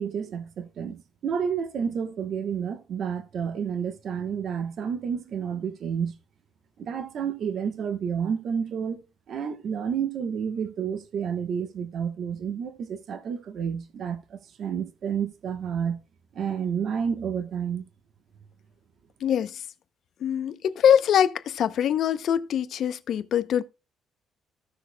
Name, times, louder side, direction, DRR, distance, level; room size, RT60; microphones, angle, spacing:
voice 1, 0.0-6.2 6.8-16.0 16.3-17.8, right 7 dB, 45° right, 1.0 m, -30 dB
voice 2, 19.2-19.6 20.2-23.6, left 9 dB, 50° left, 0.6 m, -23 dB
16.0 x 6.2 x 2.2 m
cardioid pair, 175°, 0 cm